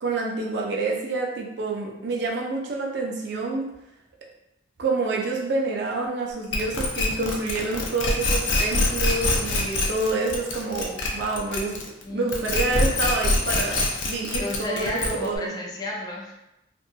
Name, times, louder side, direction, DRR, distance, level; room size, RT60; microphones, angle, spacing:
voice 1, 0.0-3.7 4.8-11.8 12.1-15.6, right 3 dB, 65° right, -2 dB, 0.5 m, -28 dB
sound 1, 6.5-12.0 12.3-15.4, left 2 dB, 85° left, 0.5 m, -24 dB
voice 2, 12.0-12.5 14.4-16.3, left 1 dB, 20° left, -2 dB, 0.3 m, -32 dB
2.6 x 2.6 x 2.3 m, 0.90 s
head